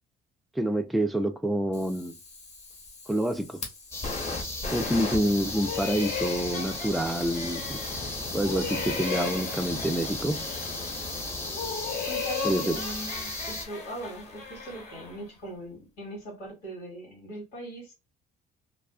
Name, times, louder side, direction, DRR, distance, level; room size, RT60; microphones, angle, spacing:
voice 1, 0.6-2.1 3.1-3.6 4.7-7.8 8.3-10.4 12.4-12.8, equal, ahead, 0.3 m, -27 dB
Fire, 1.7-14.8, left 3 dB, 40° left, 1.0 m, -40 dB
sound 1, 3.9-13.7, left 2 dB, 15° left, 0.8 m, -36 dB
sound 2, 5.5-8.1 8.4-11.0 11.4-15.2, left 5 dB, 65° left, 1.1 m, -36 dB
voice 2, 12.0-17.9, right 1 dB, 85° left, 1.5 m, -40 dB
2.4 x 2.3 x 2.3 m
cardioid pair, 110°, 17 cm